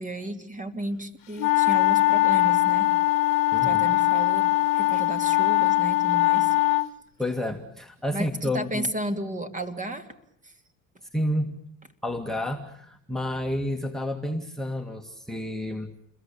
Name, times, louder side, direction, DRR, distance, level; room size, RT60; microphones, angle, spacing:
voice 1, 0.0-2.9 3.6-6.5 8.1-10.1 10.4-10.5, right 1 dB, 20° right, 10 dB, 3.0 m, -33 dB
sound 1, 1.4-6.9, left 18 dB, 70° left, 1.0 m, -21 dB
voice 2, 7.2-8.9 11.1-11.5 12.0-15.9, left 1 dB, ahead, 9 dB, 2.1 m, -30 dB
29.5 x 22.0 x 8.8 m, 0.73 s
supercardioid pair, 90°, 40 cm